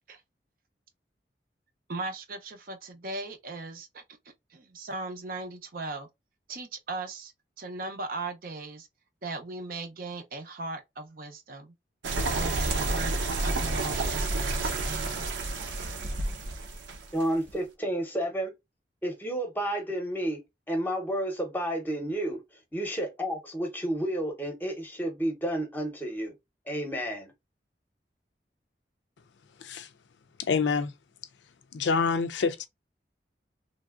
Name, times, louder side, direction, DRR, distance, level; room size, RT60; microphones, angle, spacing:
voice 1, 1.9-4.0 4.5-6.1 6.5-7.3 7.6-8.9 9.2-11.7 12.3-15.3, right 3 dB, 50° right, 0.5 m, -38 dB
sound 1, 12.0-17.5, right 2 dB, 90° right, 0.7 m, -30 dB
voice 2, 17.1-18.5 19.0-20.4 20.7-22.4 22.7-26.3 26.7-27.3, right 1 dB, 10° left, 0.7 m, -31 dB
voice 3, 29.6-29.9 30.4-30.9 31.7-32.7, left 5 dB, 85° left, 0.4 m, -27 dB
3.1 x 2.6 x 2.3 m
head